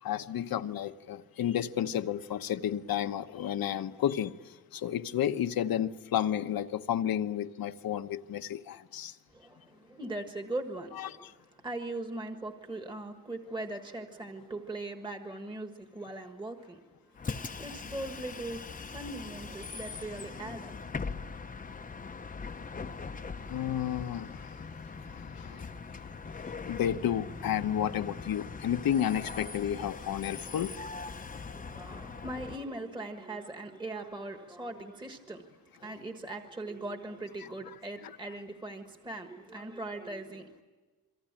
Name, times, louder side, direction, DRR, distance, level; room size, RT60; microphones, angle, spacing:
voice 1, 0.0-9.2 11.0-11.1 22.0-22.1 23.2-24.7 25.0-30.7 38.0-38.1, left 10 dB, 70° left, 1.1 m, -32 dB
voice 2, 9.3-16.8 17.1-20.8 31.4-40.6, right 2 dB, 15° right, 1.5 m, -40 dB
Bus, 17.2-32.6, left 4 dB, 20° left, 0.8 m, -41 dB
28.0 x 24.0 x 8.9 m
wide cardioid pair, 155°, 36 cm